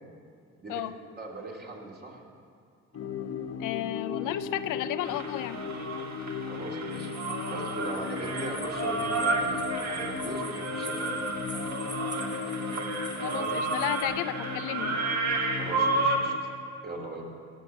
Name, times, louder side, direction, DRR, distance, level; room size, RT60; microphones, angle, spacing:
voice 1, 1.2-2.2 6.4-7.1 7.5-11.3 13.3-13.6 15.6-16.5 16.8-17.2, right 2 dB, 35° right, -1 dB, 2.5 m, -39 dB
sound 1, 2.9-16.4, left 6 dB, 55° left, 1.0 m, -36 dB
voice 2, 3.6-5.6 13.2-15.0, left 13 dB, 85° left, 13 dB, 0.5 m, -33 dB
sound 2, 5.0-16.2, right 3 dB, 60° right, 1.8 m, -32 dB
sound 3, 6.9-14.0, right 2 dB, 15° right, 1.4 m, -46 dB
17.0 x 6.1 x 7.0 m, 2.2 s
cardioid pair, 90°, 30 cm